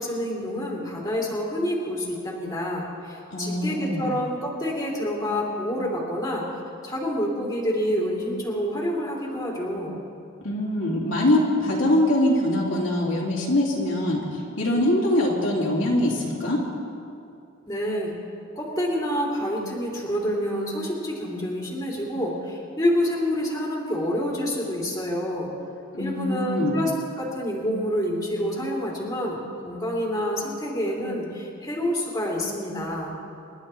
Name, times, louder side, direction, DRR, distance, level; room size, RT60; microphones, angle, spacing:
voice 1, 0.0-6.4 6.8-10.0 17.7-18.1 18.6-25.5 26.0-26.9 27.2-29.4 29.6-33.2, equal, 15° left, -4 dB, 2.9 m, -27 dB
voice 2, 3.3-4.1 10.4-16.6 25.9-26.8, left 1 dB, 65° left, -5 dB, 2.4 m, -23 dB
28.5 x 11.5 x 3.2 m, 2.6 s
head